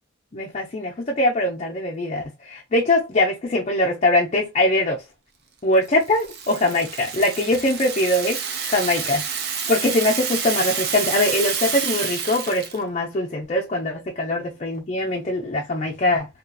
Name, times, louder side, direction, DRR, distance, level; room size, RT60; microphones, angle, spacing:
voice 1, 0.3-5.0 5.6-9.2 9.7-16.3, left 1 dB, 35° left, 0.5 m, -22 dB
Rattle (instrument), 5.9-12.8, right 7 dB, 55° right, 0.6 m, -28 dB
2.9 x 2.7 x 2.2 m
head